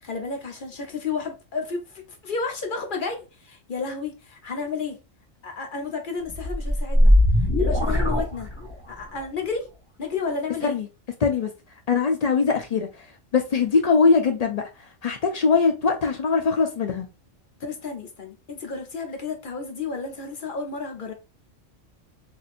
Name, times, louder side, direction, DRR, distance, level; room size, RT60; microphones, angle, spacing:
voice 1, 0.0-5.0 5.4-8.5 8.9-9.7 10.0-10.8 17.6-21.1, left 4 dB, 50° left, 0.8 m, -32 dB
sound 1, 6.3-9.0, left 1 dB, 10° left, 1.6 m, -20 dB
voice 2, 11.2-11.5 11.9-12.9 13.3-14.7 15.0-17.1, left 5 dB, 70° left, 0.3 m, -21 dB
4.1 x 2.6 x 2.5 m
omnidirectional pair, 1.3 m